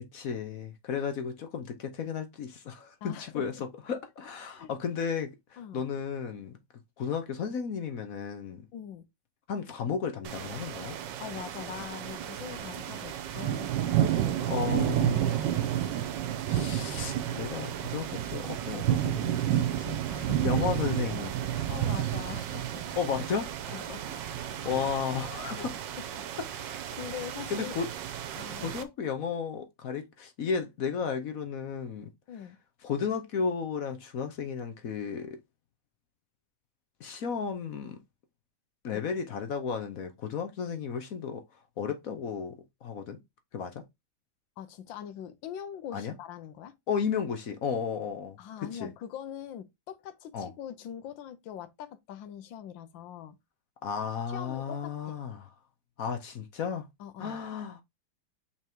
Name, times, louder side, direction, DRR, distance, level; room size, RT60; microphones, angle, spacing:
voice 1, 0.1-6.6 7.0-8.7 9.5-11.0 14.5-15.7 16.5-20.0 20.4-21.3 23.0-23.5 24.5-25.7 27.5-27.9 28.6-32.1 32.8-35.4 37.0-38.0 38.8-41.4 41.8-43.2 43.5-43.8 45.9-46.1 46.9-48.4 48.8-48.9 50.3-50.5 53.8-55.5 56.0-56.9 57.2-57.8, left 6 dB, 55° left, 1.1 m, -34 dB
voice 2, 3.0-3.6 4.4-4.8 5.6-5.8 8.7-9.0 11.2-13.7 20.1-20.5 21.5-22.6 23.7-24.1 24.7-24.8 25.6-25.7 26.0-26.3 26.6-27.8 28.3-28.8 32.3-32.6 38.9-39.0 44.6-46.7 48.4-53.4 54.3-55.2 57.0-57.4, left 9 dB, 80° left, 1.5 m, -42 dB
sound 1, 10.2-28.8, right 11 dB, 75° right, 1.4 m, -31 dB
sound 2, 21.9-27.3, right 7 dB, 50° right, 1.3 m, -52 dB
5.9 x 3.6 x 4.5 m
omnidirectional pair, 2.0 m